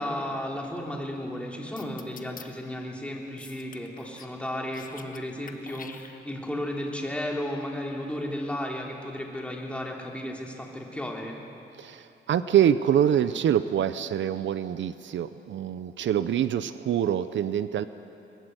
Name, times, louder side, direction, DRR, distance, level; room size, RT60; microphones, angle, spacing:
voice 1, 0.0-11.4, left 1 dB, 5° left, -1 dB, 3.3 m, -34 dB
sound 1, 1.8-2.4 3.4-4.3 4.6-5.2 5.5-6.5, left 5 dB, 45° left, 1.3 m, -46 dB
voice 2, 11.8-17.9, right 10 dB, 70° right, 13 dB, 0.7 m, -25 dB
22.0 x 21.0 x 8.0 m, 2.8 s
cardioid pair, 105°, 20 cm